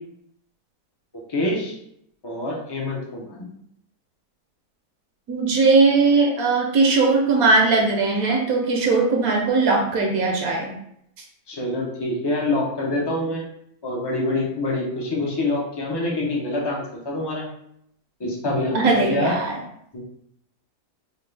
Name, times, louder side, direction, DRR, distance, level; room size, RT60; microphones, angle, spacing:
voice 1, 1.3-1.8 2.2-3.4 11.5-13.4 13.8-17.5 18.2-19.3 19.9-20.0, left 2 dB, 40° left, -3 dB, 0.3 m, -25 dB
voice 2, 5.3-10.7 18.7-19.6, right 3 dB, 70° right, 1 dB, 1.1 m, -19 dB
4.4 x 2.3 x 3.2 m, 0.72 s
omnidirectional pair, 1.7 m